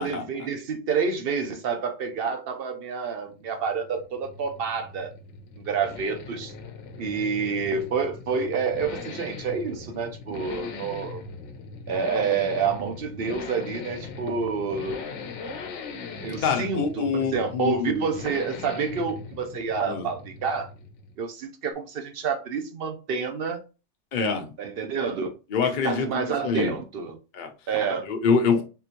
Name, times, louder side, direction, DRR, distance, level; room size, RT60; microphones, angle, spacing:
voice 1, 0.0-5.1 5.6-6.5 7.0-11.2 11.9-15.6 16.2-20.7 21.2-23.6 24.6-25.4 25.6-27.2 27.7-28.0, right 5 dB, 60° right, 0.8 m, -28 dB
sound 1, 3.2-21.3, left 4 dB, 75° left, 0.9 m, -40 dB
voice 2, 16.4-18.0 19.9-20.1 24.1-24.5 25.5-26.7 27.3-27.5 28.1-28.6, left 5 dB, 50° left, 0.8 m, -25 dB
3.6 x 2.9 x 2.5 m
omnidirectional pair, 1.2 m